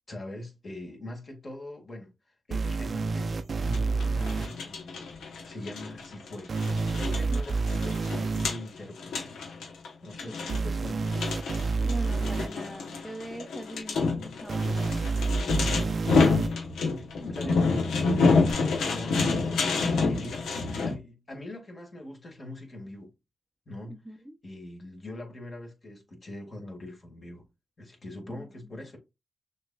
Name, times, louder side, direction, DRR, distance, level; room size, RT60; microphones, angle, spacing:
voice 1, 0.1-2.1 2.5-3.3 3.6-5.1 5.4-6.5 6.9-9.4 10.0-11.2 17.2-18.4 18.7-23.1 23.7-27.5 27.8-29.0, left 1 dB, 45° left, 1.9 m, -42 dB
sound 1, 2.5-4.5 6.5-8.5 10.5-12.5 14.5-16.5 18.5-18.6, right 4 dB, 55° right, 0.5 m, -28 dB
sound 2, 3.7-20.9, left 4 dB, 90° left, 0.9 m, -28 dB
voice 2, 7.3-7.6 10.3-10.5 11.8-15.1 23.9-24.4 28.3-28.5, right 1 dB, ahead, 0.6 m, -42 dB
6.2 x 2.9 x 2.3 m
cardioid pair, 60°, 0 cm